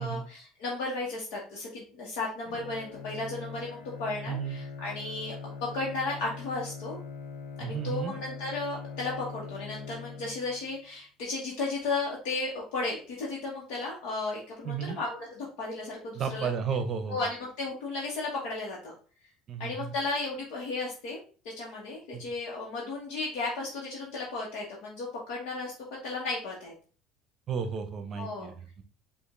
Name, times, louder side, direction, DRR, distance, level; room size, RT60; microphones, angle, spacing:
voice 1, 0.0-7.0 7.6-16.5 17.1-18.9 19.6-21.2 21.6-25.7 26.0-26.7 28.2-28.5, left 3 dB, 70° left, -4 dB, 1.2 m, -34 dB
Bowed string instrument, 2.4-10.8, left 5 dB, 90° left, 0.7 m, -42 dB
voice 2, 7.6-8.1 14.6-15.0 16.1-17.2 19.5-19.9 22.1-22.2 27.5-28.8, right 6 dB, 40° right, 8 dB, 0.7 m, -33 dB
5.1 x 2.5 x 3.7 m, 0.39 s
cardioid pair, 130°, 0 cm